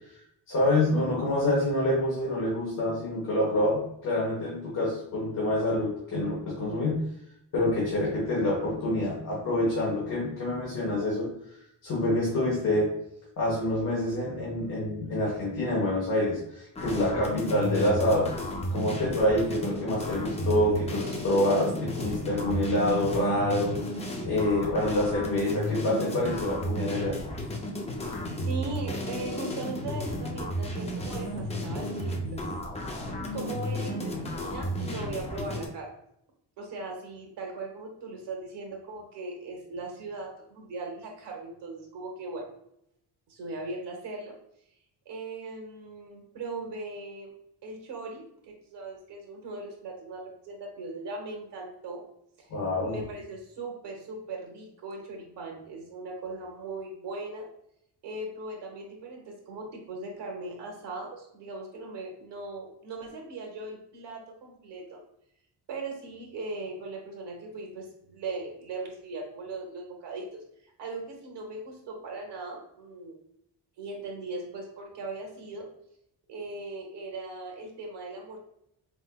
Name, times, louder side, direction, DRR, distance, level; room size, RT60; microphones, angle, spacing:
voice 1, 0.5-7.1 7.5-11.3 11.8-12.9 13.4-18.3 18.7-23.7 24.3-27.2 52.5-53.0, left 1 dB, 45° left, -6 dB, 1.2 m, -27 dB
sound 1, 16.7-35.7, equal, 15° left, 0.4 m, -33 dB
voice 2, 28.4-32.5 33.3-35.9 36.6-42.5 43.3-44.3 45.0-47.3 47.6-52.0 52.8-57.5 58.0-65.0 65.7-70.4 70.8-73.1 73.8-75.6 76.3-78.4, right 3 dB, 70° right, 0 dB, 1.3 m, -39 dB
4.3 x 3.6 x 2.3 m, 0.75 s
wide cardioid pair, 175°, 43 cm